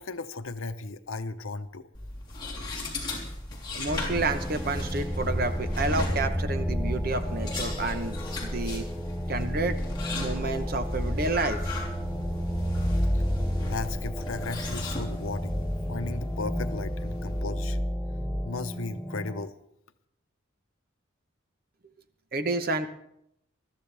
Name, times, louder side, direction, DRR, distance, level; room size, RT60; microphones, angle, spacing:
voice 1, 0.0-1.9 13.1-13.2 13.6-15.5 15.9-17.8 18.4-19.5, left 3 dB, 85° left, 11 dB, 0.8 m, -35 dB
sound 1, 1.9-17.4, left 1 dB, 20° left, 3.4 m, -36 dB
voice 2, 3.7-8.9 9.3-9.8 10.1-11.8 22.3-22.9, right 2 dB, 45° right, 9 dB, 0.9 m, -30 dB
sound 2, 3.9-19.4, equal, ahead, 0.7 m, -32 dB
21.0 x 14.0 x 3.4 m, 0.76 s
head